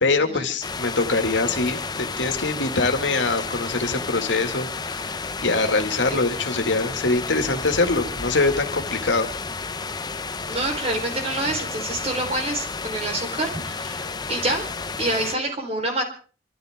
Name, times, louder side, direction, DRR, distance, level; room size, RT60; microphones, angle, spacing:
voice 1, 0.0-5.1 5.4-9.3, left 3 dB, 80° left, 5 dB, 2.4 m, -23 dB
sound 1, 0.6-15.4, left 4 dB, 25° left, 0.7 m, -31 dB
voice 2, 10.5-14.6 15.0-16.0, right 1 dB, 35° right, 2 dB, 4.2 m, -27 dB
26.0 x 13.5 x 3.7 m, 0.39 s
head